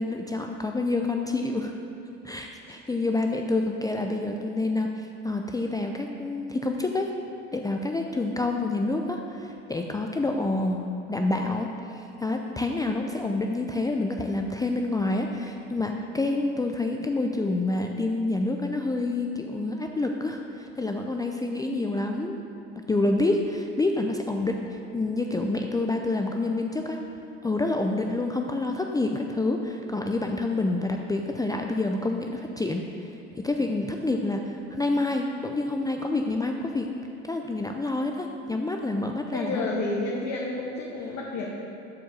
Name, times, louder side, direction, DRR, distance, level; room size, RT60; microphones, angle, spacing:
voice 1, 0.0-1.7 2.2-7.1 7.5-11.7 11.9-22.4 22.9-27.0 27.4-33.1 33.4-36.9 37.2-39.7, left 2 dB, 10° left, 2 dB, 0.5 m, -28 dB
voice 2, 39.3-41.5, left 2 dB, 60° left, -3 dB, 1.2 m, -30 dB
7.2 x 4.6 x 6.6 m, 2.8 s
hypercardioid pair, 75°, 31 cm